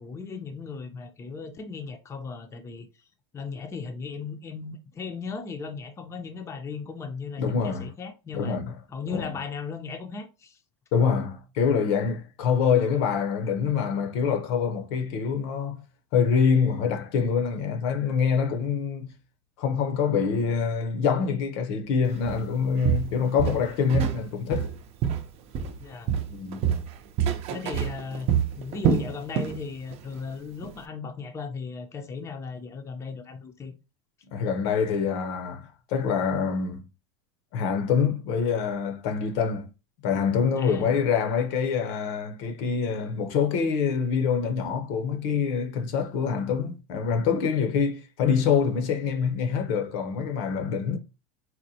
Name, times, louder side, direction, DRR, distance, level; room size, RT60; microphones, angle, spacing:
voice 1, 0.0-2.9 3.3-8.6 8.9-10.6 25.8-26.1 27.5-28.3 28.6-33.8 40.6-40.9, left 5 dB, 20° left, 0.6 m, -36 dB
voice 2, 7.4-7.9 8.3-8.7 9.1-9.3 10.9-15.8 16.1-19.1 19.6-24.7 26.3-26.7 34.3-36.9 37.5-39.7 40.0-51.0, left 6 dB, 65° left, 0.8 m, -25 dB
Walk footsteps, 22.3-22.5 22.8-24.2 24.5-25.8 26.1-29.6 29.9-30.2 30.6-30.7, right 8 dB, 45° right, 0.6 m, -26 dB
4.1 x 2.1 x 2.7 m
supercardioid pair, 120°, 14 cm